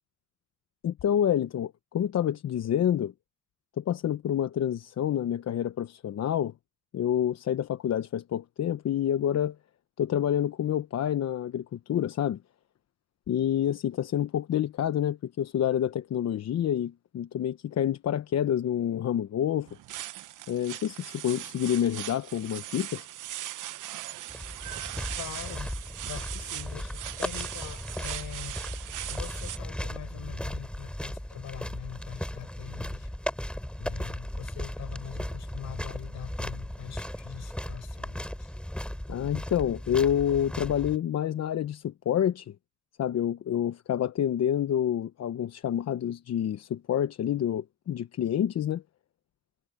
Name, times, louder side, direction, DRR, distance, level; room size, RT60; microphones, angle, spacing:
voice 1, 0.8-3.1 3.8-6.5 6.9-9.6 10.0-12.4 13.3-19.7 20.5-23.1 39.1-42.5 43.0-48.8, left 10 dB, 60° left, 1.0 m, -28 dB
sound 1, 19.7-29.6, right 14 dB, 80° right, 1.1 m, -39 dB
sound 2, 24.3-41.0, equal, 5° left, 3.2 m, -37 dB
voice 2, 25.1-25.7 26.0-28.6 29.1-33.1 33.8-38.5, left 11 dB, 75° left, 5.0 m, -43 dB
cardioid pair, 90°, 30 cm